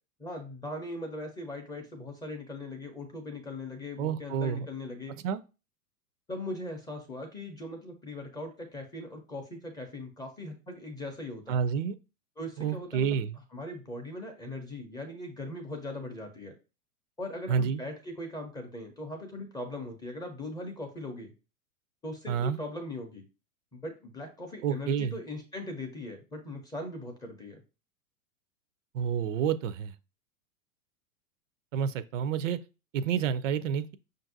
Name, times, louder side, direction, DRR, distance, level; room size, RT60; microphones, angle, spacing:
voice 1, 0.2-5.1 6.3-11.6 12.4-13.2 13.5-16.5 17.2-21.3 22.0-23.2 23.7-27.6, left 1 dB, 10° left, 0.4 m, -40 dB
voice 2, 4.0-4.7 5.2-5.4 11.5-12.0 12.6-13.3 17.5-17.8 22.3-22.6 24.6-25.1 28.9-29.9 31.7-32.6 32.9-34.0, right 7 dB, 60° right, 0.5 m, -29 dB
5.5 x 2.6 x 2.6 m
hypercardioid pair, 110°, 44 cm